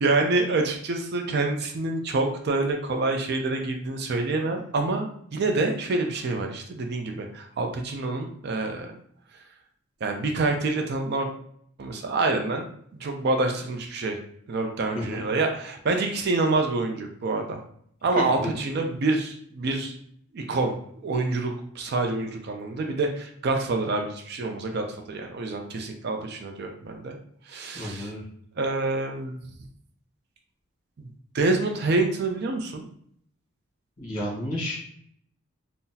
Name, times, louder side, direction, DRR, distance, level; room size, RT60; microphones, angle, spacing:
voice 1, 0.0-5.1 5.3-9.0 10.0-11.3 11.8-12.7 13.0-14.2 14.5-17.6 18.0-19.9 20.3-27.2 27.5-28.1 28.6-29.4 31.0-31.1 31.3-32.8, right 3 dB, 50° right, 4 dB, 0.4 m, -27 dB
voice 2, 18.1-18.5 27.7-28.2 34.0-34.7, left 1 dB, 40° left, -4 dB, 1.3 m, -31 dB
3.8 x 2.0 x 2.7 m, 0.67 s
head